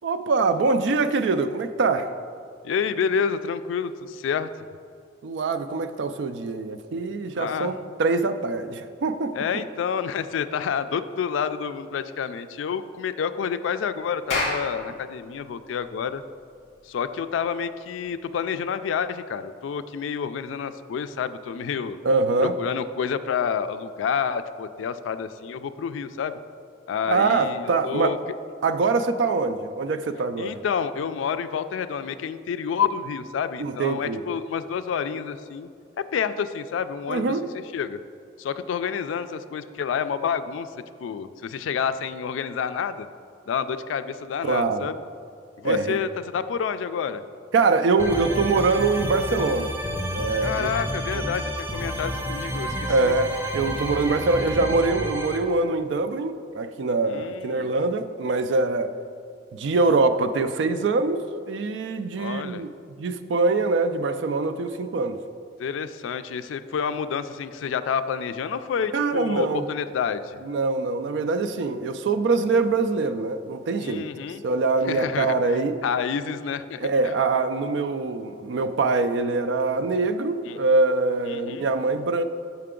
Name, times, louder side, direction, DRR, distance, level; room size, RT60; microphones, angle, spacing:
voice 1, 0.0-2.1 5.2-9.3 22.0-22.6 27.1-28.2 28.6-30.6 33.6-34.2 37.1-37.5 44.4-44.9 45.6-46.0 47.5-49.8 50.1-50.7 51.1-51.2 52.9-58.9 59.5-62.7 63.0-65.2 68.9-69.6 70.5-74.1 74.4-75.7 76.8-82.2, right 3 dB, 70° right, 10 dB, 0.4 m, -24 dB
voice 2, 2.6-4.5 7.4-7.7 9.3-16.2 16.8-22.0 22.4-26.4 26.9-28.2 30.4-35.7 36.0-37.4 37.7-38.0 38.4-40.7 41.0-43.1 43.5-44.9 45.6-47.2 50.4-53.1 57.1-57.7 62.2-62.7 65.6-70.4 73.8-74.4 74.9-77.2 80.4-80.6 81.3-81.7, left 7 dB, 90° left, 12 dB, 0.3 m, -29 dB
Clapping, 14.1-19.0, left 2 dB, 35° left, 1.7 m, -33 dB
sound 1, 48.0-55.4, equal, 10° right, 0.5 m, -30 dB
6.7 x 5.8 x 3.7 m, 2.3 s
head